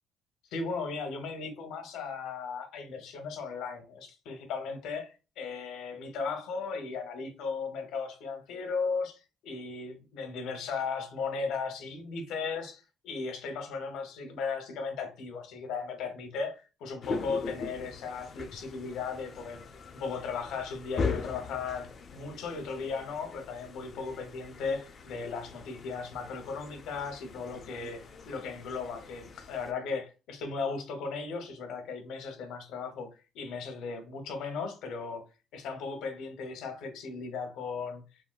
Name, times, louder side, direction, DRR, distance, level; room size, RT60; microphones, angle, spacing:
voice 1, 0.5-19.7 19.9-33.1 33.3-35.2 35.5-38.0, left 5 dB, 80° left, 0.8 m, -36 dB
sound 1, 17.0-29.7, left 4 dB, 35° left, 0.3 m, -40 dB
3.5 x 2.2 x 2.3 m
cardioid pair, 170°, 0 cm